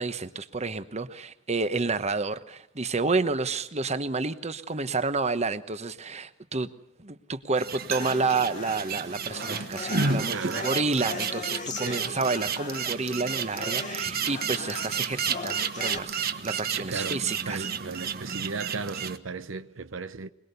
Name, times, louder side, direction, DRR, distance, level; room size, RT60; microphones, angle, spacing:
voice 1, 0.0-6.7 7.0-17.7, right 3 dB, 35° right, 1.1 m, -30 dB
sound 1, 7.6-19.2, right 6 dB, 50° right, 1.3 m, -32 dB
sound 2, 8.0-16.0, left 4 dB, 40° left, 1.2 m, -39 dB
voice 2, 10.3-10.7 11.8-12.0 16.8-17.2 17.5-20.3, right 4 dB, 70° right, 0.8 m, -35 dB
22.5 x 22.5 x 6.9 m
head